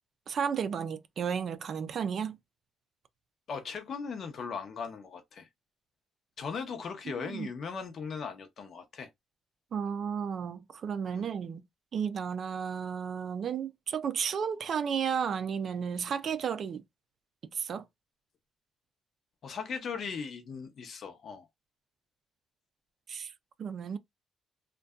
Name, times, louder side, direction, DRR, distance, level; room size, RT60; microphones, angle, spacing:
voice 1, 0.3-2.4 7.2-7.5 9.7-11.6 11.9-16.8 17.5-17.8 23.1-23.3 23.6-24.0, right 7 dB, 55° right, 0.3 m, -33 dB
voice 2, 3.5-5.5 6.4-9.1 11.1-11.3 19.4-21.5, left 5 dB, 55° left, 0.6 m, -38 dB
2.6 x 2.2 x 2.3 m
cardioid pair, 90°, 0 cm